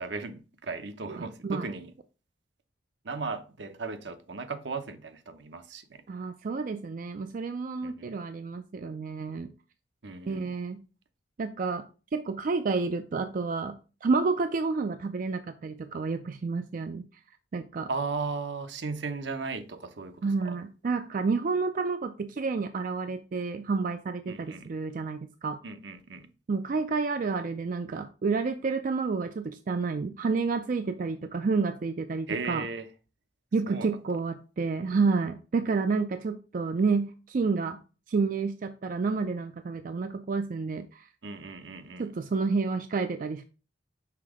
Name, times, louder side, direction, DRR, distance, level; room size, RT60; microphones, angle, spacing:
voice 1, 0.0-1.9 3.0-6.0 7.8-8.2 10.0-10.5 17.9-20.6 24.3-24.7 25.6-26.3 32.3-32.9 33.7-33.9 41.2-42.1, right 4 dB, 70° right, 0.8 m, -36 dB
voice 2, 1.1-1.7 6.1-9.5 10.3-10.8 11.4-11.8 12.1-17.1 17.5-17.9 20.2-25.6 26.5-32.7 33.5-37.8 38.1-41.1 42.0-43.4, right 4 dB, 45° right, 0.4 m, -30 dB
5.8 x 3.5 x 4.8 m
head